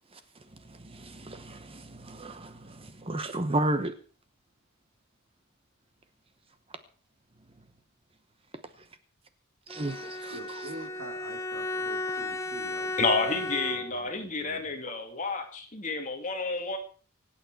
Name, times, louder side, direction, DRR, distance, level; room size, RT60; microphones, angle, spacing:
voice 1, 0.7-3.9 9.7-10.4, right 1 dB, 25° right, 1.0 m, -33 dB
Bowed string instrument, 9.7-14.2, left 2 dB, 15° left, 0.7 m, -35 dB
voice 2, 10.3-14.6, right 1 dB, 70° right, 3.5 m, -45 dB
voice 3, 13.0-16.8, left 3 dB, 35° left, 2.2 m, -30 dB
25.0 x 9.0 x 4.7 m
head